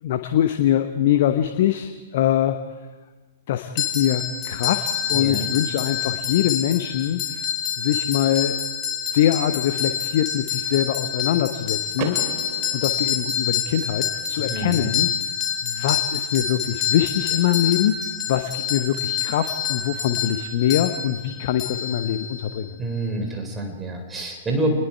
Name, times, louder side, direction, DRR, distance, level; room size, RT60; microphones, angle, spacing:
voice 1, 0.0-2.6 3.5-7.4 7.8-8.6 9.1-12.2 12.7-15.3 15.6-22.8, left 11 dB, 45° left, 8 dB, 1.0 m, -23 dB
sound 1, 3.8-22.5, left 8 dB, 25° left, 4.3 m, -27 dB
voice 2, 5.1-5.5 14.5-14.9 22.8-24.7, right 1 dB, 10° right, 2 dB, 4.2 m, -27 dB
Car / Door, 11.9-13.9, right 3 dB, 35° right, 2.6 m, -34 dB
28.0 x 20.5 x 4.7 m, 1.3 s
figure-of-eight pair, 110°, 0 cm